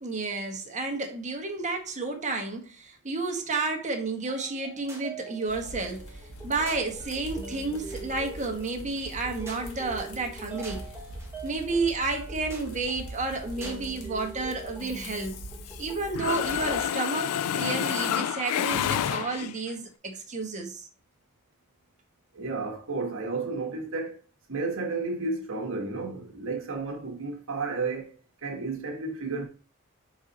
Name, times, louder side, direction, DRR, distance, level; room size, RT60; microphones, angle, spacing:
voice 1, 0.0-10.8 11.4-15.4 15.8-20.9, right 3 dB, 35° right, 1.3 m, -31 dB
sound 1, 4.3-16.4, right 2 dB, 10° right, 1.6 m, -44 dB
sound 2, 5.5-16.8, right 1 dB, 70° left, 1.5 m, -43 dB
Mechanisms, 14.9-15.9 16.2-19.7, left 9 dB, 85° left, 0.4 m, -29 dB
voice 2, 22.3-24.2 24.5-28.1 28.4-29.5, right 3 dB, 65° right, 1.5 m, -32 dB
5.5 x 4.7 x 4.2 m
head